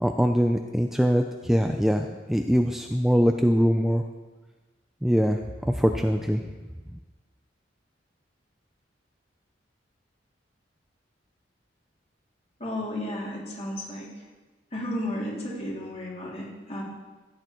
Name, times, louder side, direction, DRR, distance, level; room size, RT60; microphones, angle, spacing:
voice 1, 0.0-4.0 5.0-5.4 5.8-6.4, equal, ahead, 4 dB, 0.5 m, -22 dB
voice 2, 12.6-14.1 14.7-16.8, left 1 dB, 35° left, -4 dB, 3.3 m, -33 dB
15.0 x 9.4 x 4.6 m, 1.2 s
head